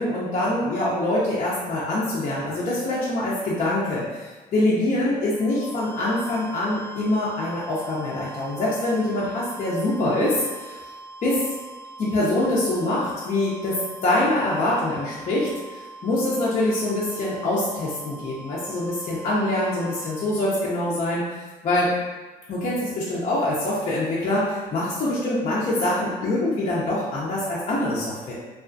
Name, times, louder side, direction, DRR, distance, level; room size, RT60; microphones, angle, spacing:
voice 1, 0.0-10.8 11.2-11.5 12.0-21.2 21.6-21.9 22.5-28.3, left 1 dB, 45° left, -7 dB, 0.5 m, -24 dB
sound 1, 5.3-20.6, right 2 dB, 20° left, 0.8 m, -42 dB
2.3 x 2.3 x 2.5 m, 1.2 s
cardioid pair, 110°, 17 cm